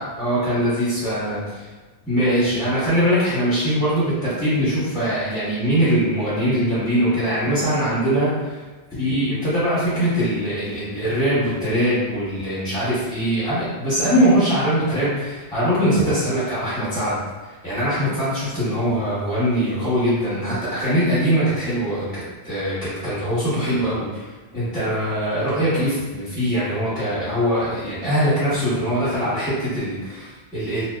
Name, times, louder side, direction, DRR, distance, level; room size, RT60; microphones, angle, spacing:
voice 1, 0.0-1.7 2.1-8.6 9.0-17.2 17.6-24.2 24.5-30.8, equal, 5° left, -13 dB, 0.7 m, -22 dB
2.7 x 2.1 x 2.3 m, 1.3 s
omnidirectional pair, 1.1 m